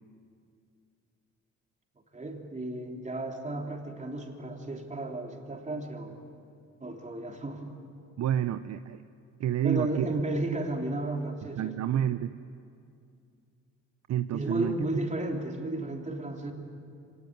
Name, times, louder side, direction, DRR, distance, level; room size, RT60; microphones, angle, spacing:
voice 1, 2.1-6.2 6.8-7.8 9.6-11.7 14.3-16.5, right 2 dB, 25° right, 2 dB, 3.4 m, -33 dB
voice 2, 8.2-9.0 9.4-10.1 11.4-12.3 14.1-14.8, right 11 dB, 60° right, 11 dB, 0.7 m, -29 dB
24.5 x 19.0 x 9.5 m, 2.4 s
cardioid pair, 90°, 30 cm